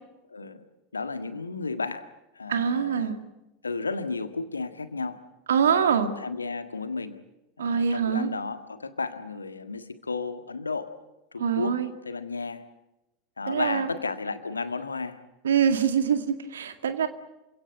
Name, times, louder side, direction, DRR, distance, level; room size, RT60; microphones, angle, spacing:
voice 1, 0.3-0.6 0.9-2.0 2.3-3.3 3.6-5.3 5.8-7.2 7.6-10.9 11.3-12.6 13.4-15.2, left 4 dB, 80° left, 10 dB, 1.6 m, -33 dB
voice 2, 2.5-3.2 5.5-6.1 7.6-8.3 11.4-11.9 13.5-13.9 15.4-17.1, right 7 dB, 70° right, 8 dB, 2.1 m, -24 dB
26.5 x 17.0 x 9.3 m, 0.95 s
figure-of-eight pair, 80°, 0 cm